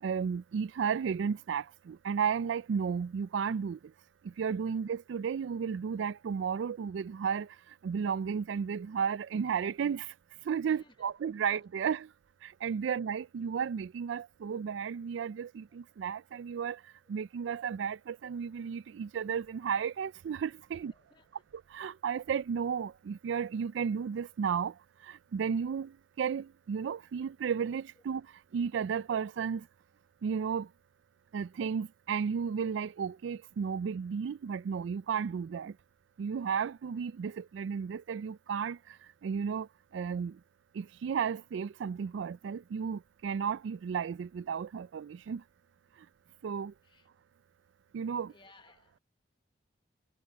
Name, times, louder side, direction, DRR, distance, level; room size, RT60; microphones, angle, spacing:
voice 1, 0.0-3.8 4.2-7.5 7.8-10.1 10.5-12.1 12.4-16.8 17.1-20.9 21.5-24.7 25.0-28.3 28.5-29.7 30.2-30.7 31.3-35.7 36.2-38.8 39.2-39.7 39.9-40.4 40.7-45.4 46.4-46.7 47.9-48.3, right 6 dB, 80° right, 0.3 m, -33 dB
voice 2, 20.9-21.4 46.8-47.1 48.3-49.0, left 3 dB, 25° left, 1.0 m, -60 dB
head